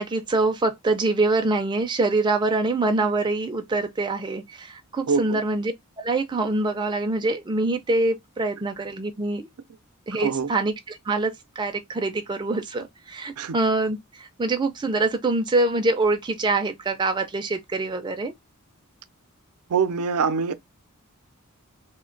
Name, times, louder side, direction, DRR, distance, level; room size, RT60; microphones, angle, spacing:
voice 1, 0.0-9.5 10.1-18.3, right 2 dB, 20° right, 0.3 m, -25 dB
voice 2, 5.1-5.4 10.2-10.5 13.4-13.6 19.7-20.5, right 5 dB, 85° right, 0.5 m, -24 dB
3.0 x 2.1 x 3.7 m
head